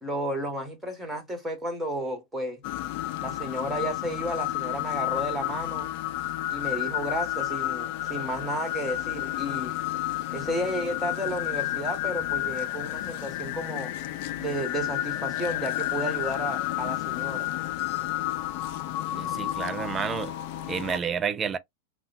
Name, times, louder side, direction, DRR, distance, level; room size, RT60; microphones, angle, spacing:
voice 1, 0.0-2.6 3.2-5.9 6.5-9.7 10.3-13.9 14.4-17.5, equal, 5° right, 1.5 m, -32 dB
sound 1, 2.6-21.0, left 14 dB, 50° left, 0.4 m, -31 dB
voice 2, 19.1-20.3 20.7-21.6, right 6 dB, 25° right, 0.4 m, -30 dB
3.5 x 2.1 x 2.6 m
figure-of-eight pair, 95°, 0 cm